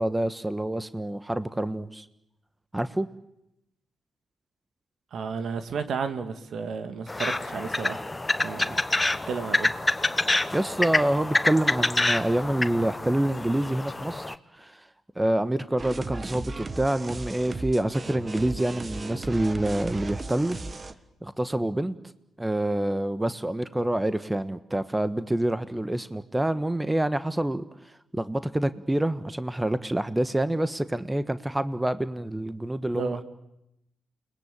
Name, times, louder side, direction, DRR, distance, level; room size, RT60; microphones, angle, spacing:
voice 1, 0.0-2.0 2.7-3.1 10.5-14.9 15.1-20.6 21.2-21.9 22.4-27.6 28.1-33.2, right 1 dB, 15° right, 1.3 m, -27 dB
voice 2, 5.1-8.1 8.4-8.8 9.3-9.7 32.9-33.2, right 5 dB, 60° right, 2.0 m, -32 dB
sound 1, 7.1-14.3, left 2 dB, 20° left, 1.1 m, -27 dB
sound 2, 15.8-20.9, right 3 dB, 35° right, 1.7 m, -36 dB
29.5 x 20.0 x 8.7 m
hypercardioid pair, 45°, 0 cm